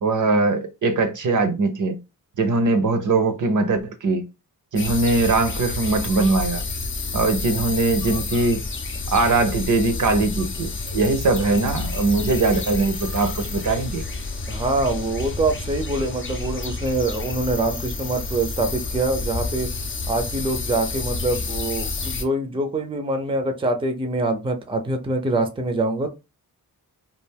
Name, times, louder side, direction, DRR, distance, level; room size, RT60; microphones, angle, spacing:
voice 1, 0.0-2.0 2.4-4.3 4.7-6.6 7.1-8.6 9.1-14.0, right 3 dB, 55° right, 0.6 m, -21 dB
sound 1, 4.8-22.2, left 3 dB, 35° left, 0.5 m, -29 dB
voice 2, 14.5-19.7 20.1-26.1, right 2 dB, 15° right, 0.5 m, -24 dB
2.4 x 2.2 x 3.3 m
cardioid pair, 60°, 36 cm